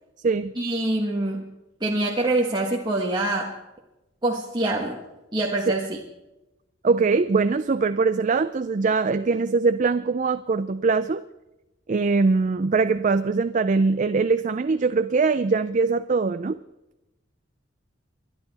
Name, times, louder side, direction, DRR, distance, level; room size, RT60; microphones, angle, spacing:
voice 1, 0.5-1.4 1.8-3.5 4.2-5.0 5.3-6.0, right 2 dB, 20° right, -2 dB, 1.3 m, -25 dB
voice 2, 6.8-11.2 11.9-16.6, right 4 dB, 40° right, 11 dB, 0.4 m, -22 dB
24.0 x 11.0 x 4.1 m, 0.95 s
head